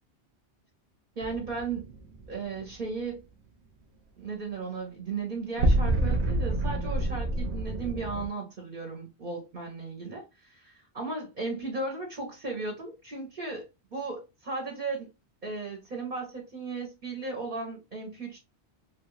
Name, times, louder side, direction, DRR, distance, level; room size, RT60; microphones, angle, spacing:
voice 1, 1.2-1.9 2.3-3.2 4.2-15.1 15.4-18.4, right 3 dB, 45° right, 0.9 m, -36 dB
sound 1, 1.2-2.6 5.6-8.3, right 1 dB, 75° right, 1.0 m, -28 dB
3.2 x 2.3 x 3.1 m
omnidirectional pair, 1.2 m